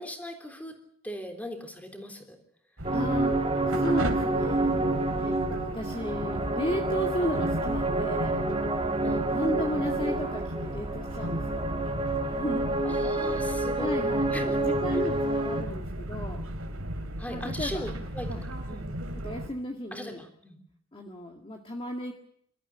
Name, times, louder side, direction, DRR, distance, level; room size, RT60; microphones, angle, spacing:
voice 1, 0.0-2.4 9.0-9.3 12.8-14.6 17.2-18.4 18.7-18.9 19.9-20.6, equal, 5° left, 5 dB, 3.4 m, -39 dB
sound 1, 2.8-15.6, right 2 dB, 30° right, 2.9 m, -28 dB
sound 2, 2.8-19.5, right 1 dB, 75° right, 3.1 m, -36 dB
voice 2, 2.9-4.8 5.2-8.4 9.3-11.7 12.3-12.7 13.2-13.5 13.8-16.4 17.3-17.9 18.3-18.4 19.1-20.3 20.9-22.1, equal, 25° left, 2 dB, 2.0 m, -34 dB
27.5 x 13.5 x 9.9 m, 0.68 s
head